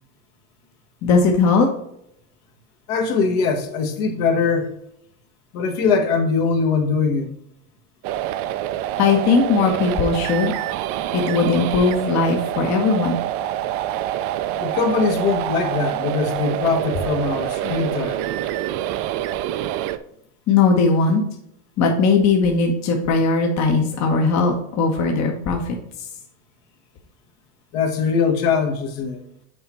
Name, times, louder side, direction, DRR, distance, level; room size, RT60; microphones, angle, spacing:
voice 1, 1.0-1.7 9.0-10.5 11.1-13.2 17.6-17.7 20.5-21.2 21.8-26.1, left 4 dB, 45° left, 1.1 m, -19 dB
voice 2, 2.9-4.8 5.5-7.3 14.6-18.2 27.7-29.2, left 5 dB, 65° left, 1.5 m, -21 dB
sound 1, 8.0-20.0, right 13 dB, 60° right, 0.6 m, -26 dB
6.8 x 4.4 x 4.3 m
supercardioid pair, 110°, 39 cm